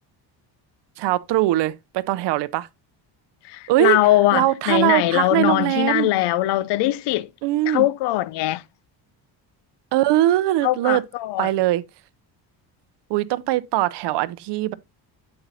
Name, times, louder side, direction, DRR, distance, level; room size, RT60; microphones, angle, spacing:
voice 1, 1.0-2.7 3.7-4.0 4.3-6.1 7.4-7.9 9.9-11.0 11.4-11.8 13.1-14.7, right 15 dB, 70° right, 0.6 m, -21 dB
voice 2, 3.5-7.3 7.7-8.6 10.6-11.5, left 16 dB, 70° left, 0.5 m, -21 dB
8.0 x 7.7 x 2.7 m
cardioid pair, 90°, 43 cm